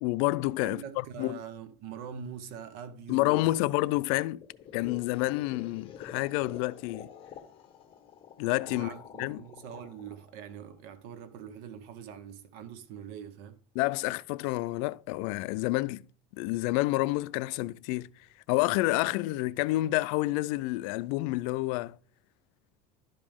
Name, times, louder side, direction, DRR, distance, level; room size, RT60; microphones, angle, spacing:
voice 1, 0.0-0.8 1.2-1.4 3.1-4.4 4.7-7.1 8.4-8.9 9.2-9.4 13.8-16.1 16.4-18.1 18.5-22.0, left 19 dB, 75° left, 0.4 m, -29 dB
voice 2, 0.6-3.5 8.7-13.6, right 8 dB, 65° right, 0.9 m, -43 dB
sound 1, 4.4-11.3, left 8 dB, 30° left, 1.1 m, -48 dB
11.5 x 5.2 x 3.5 m
cardioid pair, 170°, 17 cm